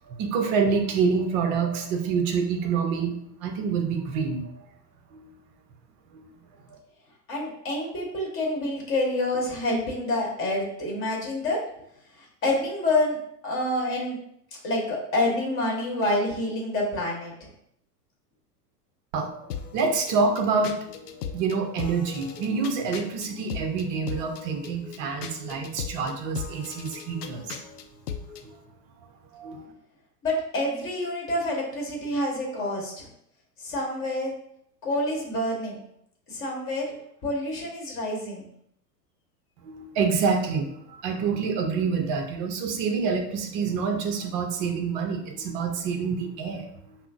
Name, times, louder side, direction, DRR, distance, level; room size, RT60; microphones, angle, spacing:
voice 1, 0.1-4.5 5.1-5.3 6.1-6.3 6.7-6.8 19.1-19.5 19.7-27.6 28.4-28.6 29.3-29.7 39.6-47.0, right 5 dB, 30° right, 4 dB, 0.5 m, -27 dB
voice 2, 7.3-11.6 12.2-13.2 13.4-14.2 14.6-17.5 30.2-33.1 33.6-34.3 34.8-35.8 36.3-37.0 37.2-38.5, left 1 dB, 25° left, -1 dB, 1.2 m, -27 dB
sound 1, 19.5-28.5, left 7 dB, 70° left, 0.5 m, -38 dB
5.5 x 2.0 x 2.5 m, 0.72 s
figure-of-eight pair, 95°, 49 cm